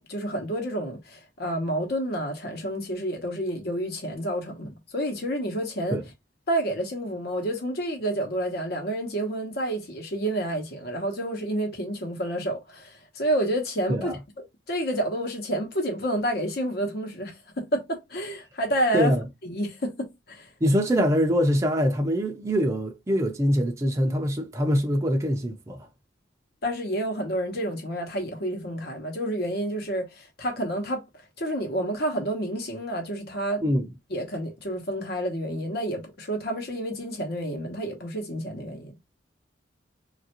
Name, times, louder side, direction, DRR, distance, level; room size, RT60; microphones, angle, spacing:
voice 1, 0.0-6.0 6.5-14.1 14.7-19.1 19.4-20.5 26.6-31.0 31.4-33.7 34.1-38.9, right 1 dB, 60° left, 0.9 m, -29 dB
voice 2, 18.9-19.2 20.6-25.9 33.6-33.8, equal, 15° right, 0.4 m, -24 dB
3.2 x 2.5 x 2.8 m
head